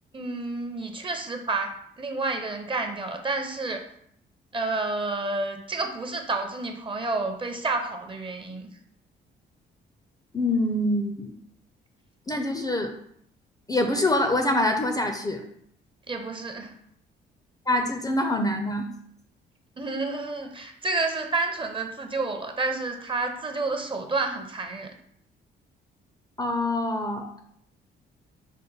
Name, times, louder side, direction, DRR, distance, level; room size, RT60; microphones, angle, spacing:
voice 1, 0.1-3.8 4.5-8.7 16.1-16.7 19.8-24.9, right 3 dB, 25° right, 5 dB, 0.6 m, -30 dB
voice 2, 10.3-11.3 12.3-12.9 13.7-15.4 17.7-18.9 26.4-27.4, left 1 dB, 20° left, 4 dB, 0.5 m, -25 dB
5.3 x 2.1 x 3.9 m, 0.69 s
cardioid pair, 90°, 20 cm